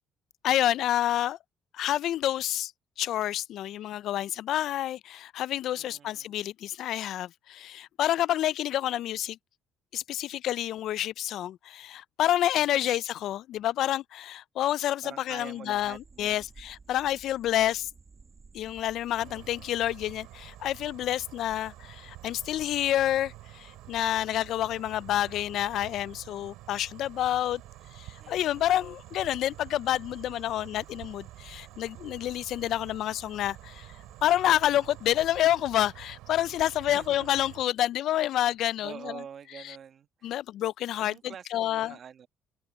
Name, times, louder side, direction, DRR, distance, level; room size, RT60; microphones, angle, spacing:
voice 1, 0.4-1.4 1.7-2.7 3.0-9.4 9.9-17.9 18.5-27.6 27.9-33.9 34.2-38.9 40.2-41.9, left 12 dB, 70° left, 0.3 m, -28 dB
voice 2, 5.7-6.4 12.6-13.0 15.0-16.5 19.2-19.9 24.5-24.9 28.2-28.7 36.9-37.3 38.8-40.3 41.0-42.3, right 8 dB, 50° right, 1.2 m, -47 dB
sound 1, 15.7-35.5, right 4 dB, 30° right, 1.8 m, -57 dB
sound 2, 19.2-37.6, right 18 dB, 85° right, 4.7 m, -48 dB
cardioid pair, 100°, 0 cm